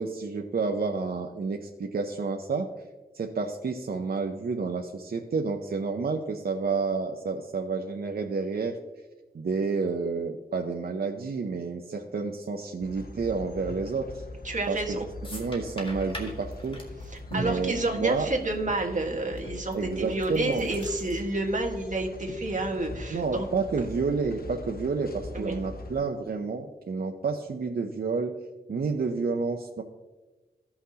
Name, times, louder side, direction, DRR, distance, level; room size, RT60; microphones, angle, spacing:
voice 1, 0.0-2.7 3.1-8.8 9.3-14.2 14.7-15.0 15.3-16.8 17.3-18.3 19.7-20.7 23.1-28.3 28.7-29.8, right 4 dB, 70° right, 3 dB, 0.6 m, -30 dB
sound 1, 12.8-26.0, left 2 dB, 65° left, 0.7 m, -42 dB
voice 2, 14.4-15.0 17.1-23.5 23.8-23.9 25.3-25.6, right 2 dB, 50° right, 1 dB, 1.5 m, -29 dB
sound 2, 14.6-14.9 15.2-18.2 18.5-18.7 19.4-19.7 20.1-21.2, equal, 30° left, 1.7 m, -41 dB
15.5 x 5.8 x 2.8 m, 1.2 s
wide cardioid pair, 95°, 17 cm